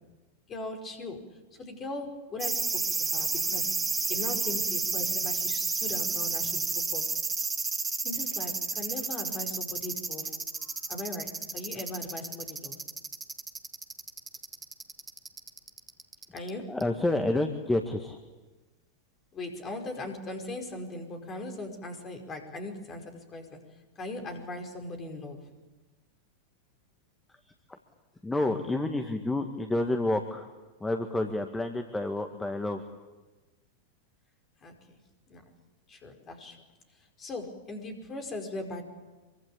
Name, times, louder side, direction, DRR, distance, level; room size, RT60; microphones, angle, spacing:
voice 1, 0.5-3.7 4.1-7.1 8.0-10.4 10.9-12.8 16.3-16.8 19.3-23.6 24.0-25.5 34.6-34.7 35.3-35.4 35.9-36.6 37.2-38.8, left 2 dB, 25° left, 4 dB, 5.1 m, -39 dB
sound 1, 2.4-16.5 16.8-16.9, right 4 dB, 15° right, 2.0 m, -31 dB
voice 2, 16.7-18.2 27.5-27.8 28.2-30.5 30.8-32.9, left 2 dB, 10° left, 5 dB, 1.8 m, -29 dB
26.0 x 24.0 x 8.8 m, 1.2 s
figure-of-eight pair, 90°, 0 cm